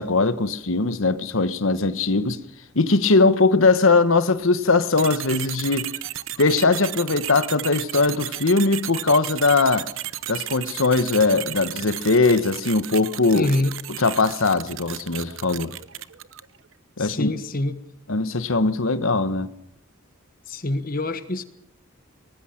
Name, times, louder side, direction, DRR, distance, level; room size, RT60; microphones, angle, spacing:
voice 1, 0.0-2.4 2.7-5.9 6.4-9.9 10.3-13.5 14.0-15.7 17.0-17.3 18.1-19.5, left 3 dB, 80° left, 1.2 m, -20 dB
sound 1, 5.0-16.6, right 13 dB, 75° right, 0.9 m, -34 dB
voice 2, 13.3-13.7 17.0-17.8 20.5-21.4, left 2 dB, 45° left, 1.4 m, -25 dB
24.0 x 19.5 x 5.9 m
head